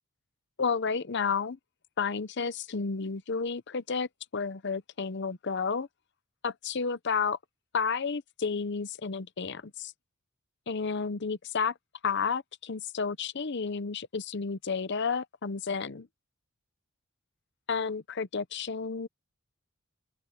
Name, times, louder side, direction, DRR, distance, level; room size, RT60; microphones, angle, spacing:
voice 1, 0.6-1.6 2.0-5.9 6.4-7.4 7.7-9.9 10.7-11.7 12.0-16.1 17.7-19.1, left 5 dB, 50° left, 0.7 m, -31 dB
open air
head